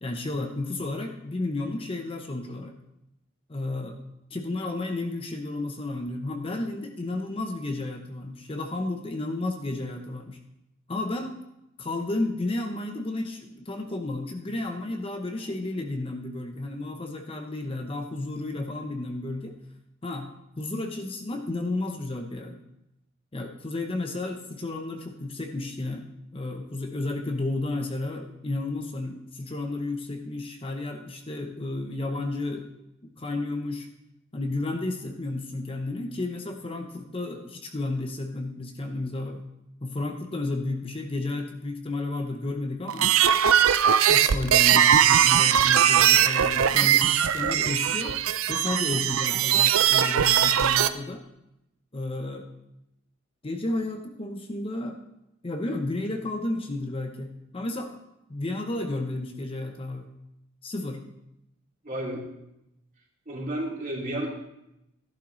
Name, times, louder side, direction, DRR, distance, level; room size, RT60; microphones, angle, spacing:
voice 1, 0.0-2.7 3.5-4.0 4.3-10.4 10.9-11.4 11.8-19.6 20.0-20.3 20.6-22.6 23.3-26.0 26.3-32.7 33.0-33.9 34.3-39.4 39.8-43.1 44.1-48.2 48.5-51.2 51.9-52.5 53.4-55.0 55.4-58.0 58.3-60.1 60.6-61.0, left 2 dB, 25° left, 4 dB, 0.8 m, -32 dB
sound 1, 42.9-50.9, right 9 dB, 80° right, 0.5 m, -20 dB
voice 2, 61.8-62.2 63.3-64.3, right 1 dB, 40° right, -2 dB, 2.7 m, -31 dB
13.5 x 11.5 x 3.1 m, 0.85 s
head